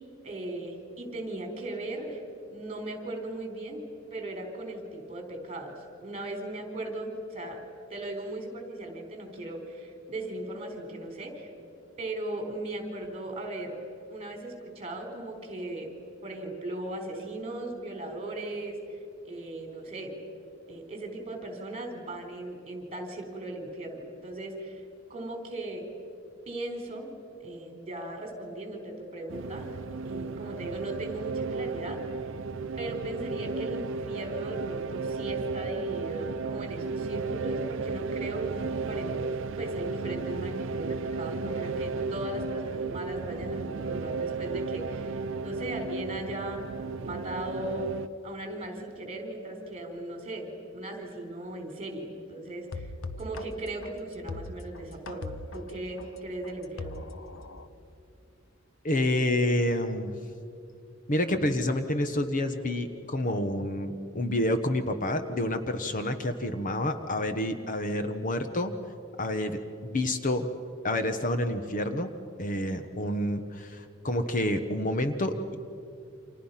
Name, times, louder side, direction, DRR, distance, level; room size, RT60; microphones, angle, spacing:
voice 1, 0.2-2.2 2.5-3.8 4.1-5.7 6.0-7.6 7.9-11.5 12.0-13.8 14.1-15.9 16.2-18.8 19.2-20.2 20.7-24.8 25.1-25.8 26.5-27.1 27.4-29.8 30.0-32.0 32.8-46.6 47.0-47.9 48.2-52.9 53.2-57.1, right 1 dB, 30° right, 4 dB, 4.0 m, -38 dB
sound 1, 29.3-48.1, right 4 dB, 65° right, 0.6 m, -34 dB
sound 2, 52.7-57.7, left 2 dB, 75° left, 1.1 m, -40 dB
voice 2, 58.8-60.2 61.1-68.7 69.2-70.5 70.8-72.1 72.4-75.6, left 1 dB, 40° left, 8 dB, 1.2 m, -28 dB
30.0 x 26.0 x 5.8 m, 2.6 s
head